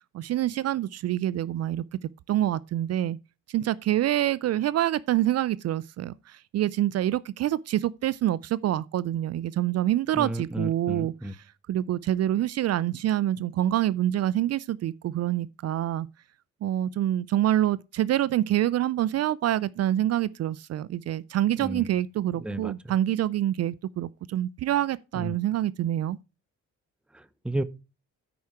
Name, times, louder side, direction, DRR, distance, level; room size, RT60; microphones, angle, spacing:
voice 1, 0.1-1.8 2.3-3.2 3.5-11.1 11.7-16.1 16.6-26.2, right 12 dB, 55° right, 0.4 m, -26 dB
voice 2, 10.1-11.3 21.6-21.9 22.3-22.9 25.1-25.4 27.1-27.6, right 1 dB, 5° right, 0.6 m, -33 dB
9.4 x 4.8 x 5.7 m
cardioid pair, 90°, 30 cm